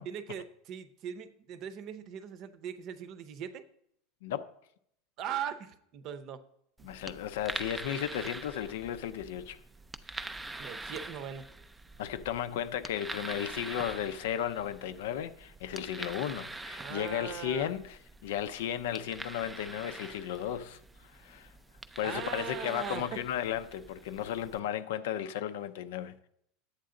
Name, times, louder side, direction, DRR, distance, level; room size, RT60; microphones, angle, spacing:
voice 1, 0.1-3.6 5.2-6.4 6.8-6.9 10.6-11.5 16.8-17.7 22.0-23.3, right 8 dB, 40° right, 0.7 m, -40 dB
voice 2, 6.8-9.6 12.0-21.5 22.0-26.3, left 10 dB, 80° left, 0.6 m, -35 dB
sound 1, 6.8-24.6, right 2 dB, 5° right, 0.3 m, -45 dB
10.5 x 8.3 x 3.8 m
supercardioid pair, 160°, 0 cm